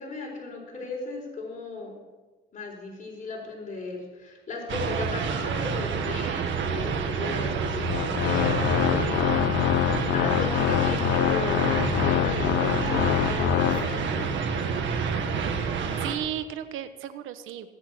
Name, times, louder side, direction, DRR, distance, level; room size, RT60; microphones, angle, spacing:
voice 1, 0.0-2.0 2.5-9.2 10.1-15.5, left 3 dB, 40° left, -1 dB, 4.2 m, -36 dB
sound 1, 4.7-16.2, right 6 dB, 70° right, 1.7 m, -28 dB
Organ, 7.7-14.3, left 14 dB, 80° left, 0.4 m, -25 dB
voice 2, 15.6-17.7, right 11 dB, 90° right, 10 dB, 1.1 m, -35 dB
17.5 x 8.4 x 6.1 m, 1.2 s
cardioid pair, 90°, 20 cm